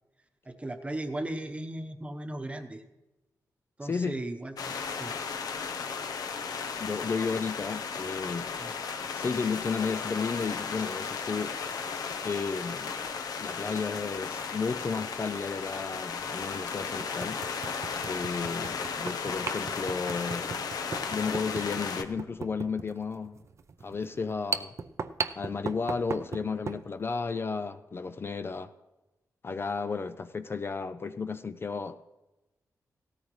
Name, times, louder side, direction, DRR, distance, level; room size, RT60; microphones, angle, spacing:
voice 1, 0.4-2.8 3.8-5.1 8.6-8.7, right 1 dB, 20° right, 1.0 m, -37 dB
voice 2, 3.8-4.1 6.7-8.5 9.2-11.6 12.2-13.0 13.4-17.4 18.0-20.6 21.1-23.4 23.8-24.7 25.4-28.7 29.4-32.0, left 5 dB, 35° left, 0.4 m, -33 dB
sound 1, 4.6-22.0, left 5 dB, 75° left, 0.9 m, -35 dB
sound 2, 15.7-15.8 16.4-16.5 17.0-26.9, right 5 dB, 50° right, 0.5 m, -38 dB
17.0 x 13.5 x 3.2 m
wide cardioid pair, 115°, 7 cm